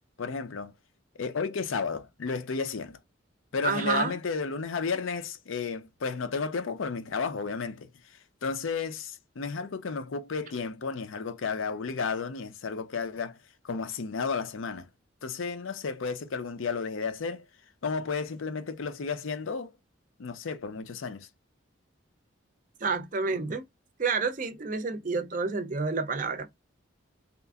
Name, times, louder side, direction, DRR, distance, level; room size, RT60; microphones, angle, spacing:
voice 1, 0.2-0.7 1.1-3.0 3.5-13.4 13.6-14.9 15.2-17.5 17.8-19.7 20.2-21.3, left 5 dB, 85° left, 0.5 m, -33 dB
voice 2, 3.6-4.2 22.8-23.6 24.0-26.5, right 4 dB, 40° right, 0.5 m, -29 dB
2.8 x 2.5 x 2.3 m
head